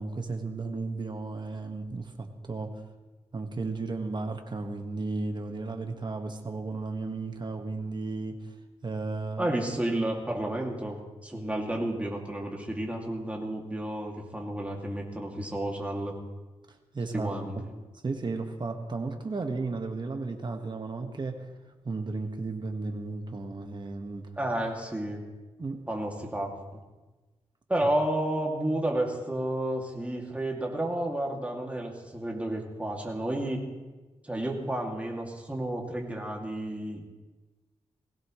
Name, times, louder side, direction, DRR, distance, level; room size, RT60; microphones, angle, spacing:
voice 1, 0.0-2.8 3.3-8.5 8.8-9.5 16.9-17.7 18.0-21.5 21.8-24.3 25.6-25.9, right 3 dB, 40° right, 5 dB, 1.6 m, -34 dB
voice 2, 9.4-11.0 11.2-16.1 17.1-17.6 24.4-25.2 25.9-26.5 27.7-33.6 34.2-37.0, right 1 dB, 10° right, 0 dB, 2.5 m, -31 dB
20.0 x 16.5 x 3.2 m, 1.2 s
wide cardioid pair, 95°, 11 cm